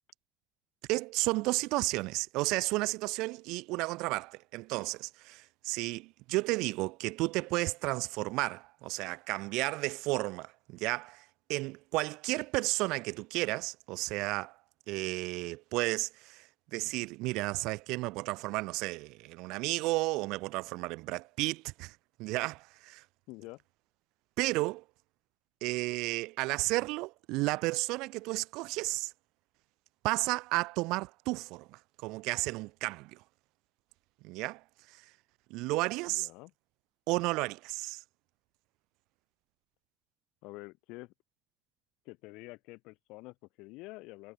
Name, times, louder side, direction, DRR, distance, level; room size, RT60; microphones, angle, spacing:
voice 1, 0.9-11.2 11.5-14.6 14.9-23.0 24.4-24.8 25.6-29.1 30.0-33.2 34.2-34.6 34.9-35.0 35.5-36.3 37.1-38.0, right 22 dB, 80° right, 0.9 m, -33 dB
voice 2, 23.3-23.6 36.1-36.5 40.4-41.1 42.0-44.3, left 23 dB, 80° left, 4.7 m, -47 dB
cardioid pair, 115°, 0 cm